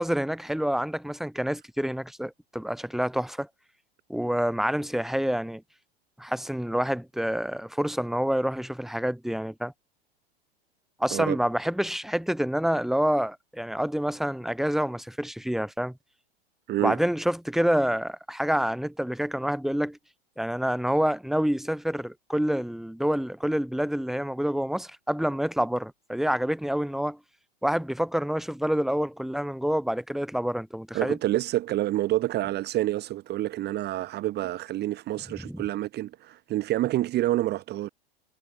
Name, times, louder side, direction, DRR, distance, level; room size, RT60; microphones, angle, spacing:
voice 1, 0.0-3.5 4.1-5.6 6.2-9.7 11.0-16.0 16.8-20.0 20.4-27.2 27.6-31.2 35.4-35.6, equal, ahead, 6.7 m, -27 dB
voice 2, 16.7-17.0 30.9-37.9, right 15 dB, 35° right, 2.1 m, -28 dB
hypercardioid pair, 100°, 31 cm